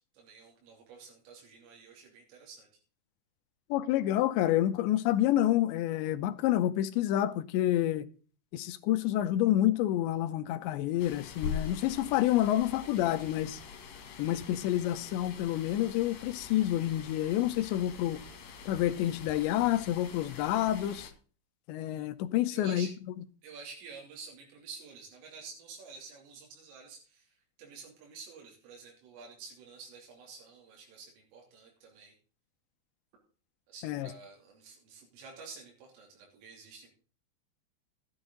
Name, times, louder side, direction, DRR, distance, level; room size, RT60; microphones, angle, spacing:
voice 1, 0.0-2.7 22.5-22.9 23.4-32.1 33.7-36.9, right 5 dB, 85° right, 5.6 m, -50 dB
voice 2, 3.7-8.1 8.5-13.6 14.2-18.2 18.7-21.1 21.7-22.9 33.8-34.1, left 13 dB, 80° left, 2.8 m, -28 dB
sound 1, 11.0-21.1, left 6 dB, 55° left, 3.3 m, -44 dB
13.0 x 9.9 x 3.8 m
omnidirectional pair, 5.7 m